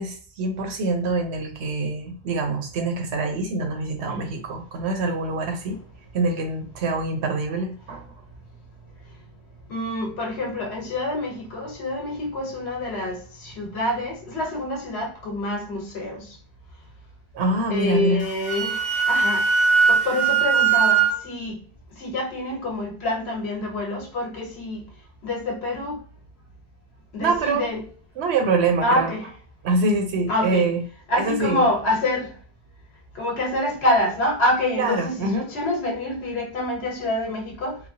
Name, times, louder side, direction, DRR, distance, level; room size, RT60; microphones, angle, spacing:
voice 1, 0.0-5.8 6.1-8.1 17.3-18.2 27.2-27.7 28.2-29.1 29.6-30.8 31.1-31.6 34.8-35.5, right 3 dB, 75° right, 5 dB, 0.9 m, -25 dB
voice 2, 9.7-16.4 17.7-18.8 19.1-19.4 19.9-21.6 22.0-24.8 25.2-26.0 27.1-27.8 28.8-29.2 30.3-30.7 31.1-32.3 33.1-37.8, left 1 dB, 70° left, -1 dB, 1.1 m, -26 dB
Wind instrument woodwind instrument, 18.2-21.1, right 6 dB, 10° left, 0.7 m, -20 dB
3.1 x 2.0 x 2.7 m, 0.41 s
omnidirectional pair, 1.1 m